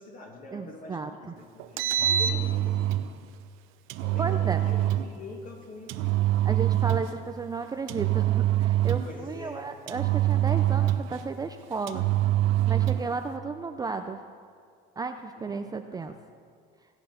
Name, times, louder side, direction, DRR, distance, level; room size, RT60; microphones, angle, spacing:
voice 1, 0.0-2.9 4.0-6.3 9.0-9.7 15.3-15.6 15.9-16.2, left 2 dB, 40° left, 0 dB, 2.5 m, -44 dB
voice 2, 0.5-1.1 4.2-4.6 6.4-12.1 12.7-14.2 15.0-16.1, right 4 dB, 20° right, 7 dB, 0.4 m, -33 dB
Engine, 1.6-3.1 3.9-5.1 5.9-7.2 7.9-9.2 9.9-11.2 11.9-13.1, right 12 dB, 70° right, 0.7 m, -25 dB
16.0 x 8.9 x 5.7 m, 2.2 s
cardioid pair, 130°, 21 cm